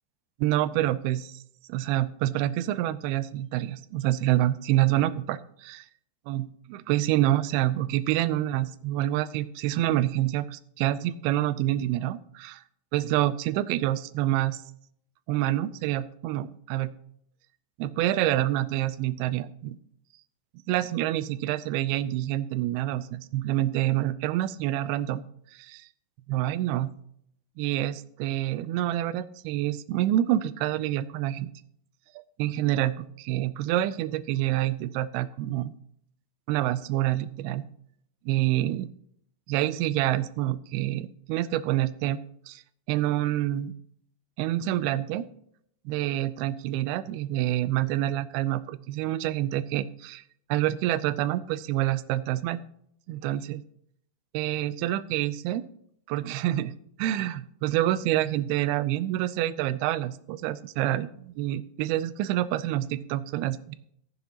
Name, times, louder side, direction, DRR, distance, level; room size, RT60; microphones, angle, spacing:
voice 1, 0.4-1.4 1.7-5.9 6.3-12.6 12.9-14.6 15.3-16.9 17.8-19.8 20.7-25.3 25.5-25.7 26.3-26.9 27.6-31.5 32.4-35.7 36.5-37.7 38.3-38.9 39.5-42.2 42.5-42.6 42.9-43.7 44.4-45.3 45.9-50.2 50.5-52.6 53.1-53.6 54.3-55.7 56.1-56.7 57.0-63.8, right 14 dB, 90° right, 15 dB, 2.5 m, -27 dB
15.0 x 10.5 x 2.9 m, 0.70 s
omnidirectional pair, 4.4 m